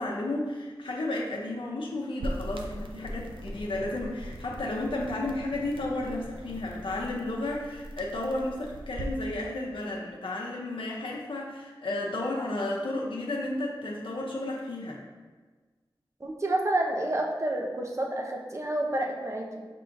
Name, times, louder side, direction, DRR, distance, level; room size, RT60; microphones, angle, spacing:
voice 1, 0.0-15.0, left 2 dB, 85° left, -3 dB, 0.6 m, -33 dB
sound 1, 2.2-9.2, equal, 85° right, 0.5 m, -40 dB
voice 2, 16.2-19.6, right 1 dB, 35° right, 1 dB, 0.6 m, -29 dB
5.7 x 3.6 x 2.6 m, 1.4 s
wide cardioid pair, 85°, 9 cm